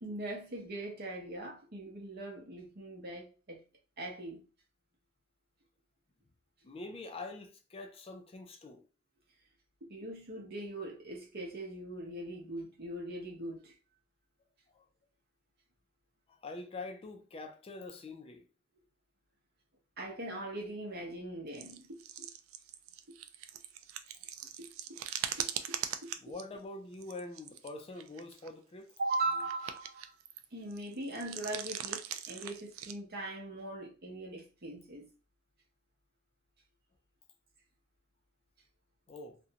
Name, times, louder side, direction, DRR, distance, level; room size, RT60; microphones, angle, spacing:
voice 1, 0.0-3.6 4.0-4.4 9.9-13.7 20.0-22.3 24.6-25.0 25.4-25.8 26.0-26.1 29.0-30.0 30.5-35.1, right 2 dB, 50° right, 0.8 m, -40 dB
voice 2, 6.6-8.9 14.7-14.8 16.3-18.4 26.2-28.9 39.1-39.4, left 2 dB, 30° left, 0.4 m, -45 dB
sound 1, 21.5-26.4 26.9-27.7 28.0-28.5 29.0-30.4 30.7-32.9, right 10 dB, 85° right, 0.3 m, -41 dB
2.5 x 2.1 x 2.7 m
head